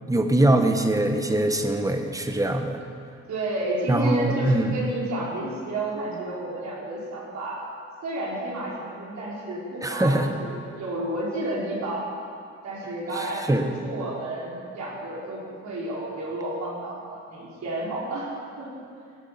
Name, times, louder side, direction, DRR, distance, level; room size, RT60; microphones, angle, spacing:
voice 1, 0.1-2.8 3.9-4.8 9.8-10.3 13.2-13.7, right 1 dB, 10° right, 6 dB, 1.3 m, -22 dB
voice 2, 3.3-7.6 8.0-12.1 12.6-18.7, right 2 dB, 65° right, -5 dB, 4.7 m, -31 dB
17.0 x 9.9 x 6.9 m, 2.4 s
cardioid pair, 90°, 30 cm